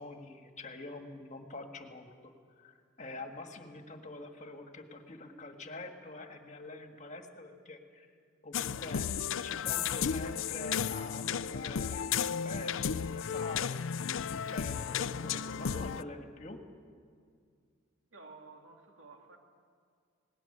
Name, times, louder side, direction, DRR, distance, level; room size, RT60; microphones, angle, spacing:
voice 1, 0.0-2.3 2.6-8.1 8.4-9.1 9.4-16.6, left 2 dB, 35° left, 5 dB, 1.7 m, -45 dB
sound 1, 8.5-16.0, left 7 dB, 80° left, 0.5 m, -34 dB
voice 2, 18.1-19.4, right 3 dB, 80° right, 2 dB, 2.9 m, -53 dB
19.0 x 18.5 x 9.9 m, 2.1 s
head